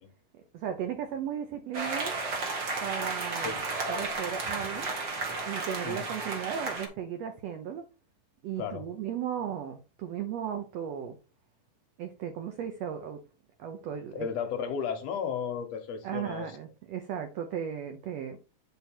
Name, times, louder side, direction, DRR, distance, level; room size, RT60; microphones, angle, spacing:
voice 1, 0.3-2.2 2.8-3.6 3.9-4.9 5.4-7.8 8.4-11.2 12.0-13.2 13.6-14.3 16.0-18.4, right 9 dB, 75° right, 5 dB, 1.5 m, -36 dB
sound 1, 1.7-6.9, right 3 dB, 50° right, 1.3 m, -33 dB
voice 2, 3.3-3.7 5.8-6.1 8.6-8.9 14.1-16.6, left 7 dB, 70° left, 6 dB, 1.6 m, -34 dB
9.4 x 3.6 x 4.4 m, 0.33 s
omnidirectional pair, 3.9 m